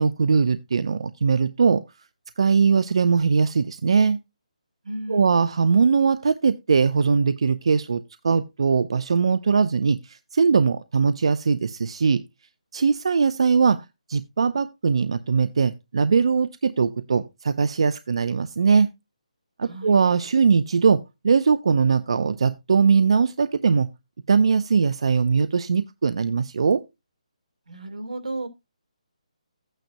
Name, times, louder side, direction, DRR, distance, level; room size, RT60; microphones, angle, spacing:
voice 1, 0.0-1.8 2.4-4.2 5.1-12.2 12.7-13.8 14.1-18.9 19.6-23.9 24.3-26.8, right 5 dB, 50° right, 0.5 m, -21 dB
voice 2, 4.8-5.4 19.6-19.9 27.7-28.5, right 2 dB, 80° right, 2.5 m, -33 dB
12.5 x 9.0 x 2.6 m
hypercardioid pair, 175°, 4 cm